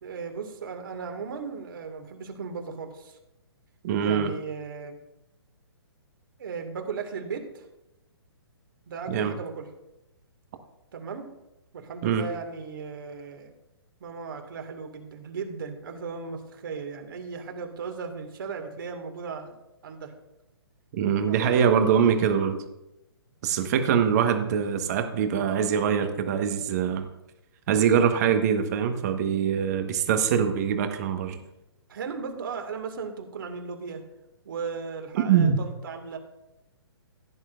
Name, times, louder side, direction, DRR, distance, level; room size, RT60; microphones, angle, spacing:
voice 1, 0.0-3.2 4.0-5.0 6.4-7.7 8.9-9.7 10.9-11.2 11.7-13.5 14.0-19.6 19.8-20.1 21.3-21.6 31.9-34.0 34.4-36.2, right 5 dB, 55° right, 4 dB, 2.2 m, -36 dB
voice 2, 3.8-4.3 9.1-9.4 12.0-12.2 20.9-22.6 23.4-27.1 27.7-31.4 35.3-35.6, right 7 dB, 40° right, 6 dB, 1.4 m, -23 dB
16.0 x 9.7 x 2.6 m, 0.91 s
figure-of-eight pair, 130°, 13 cm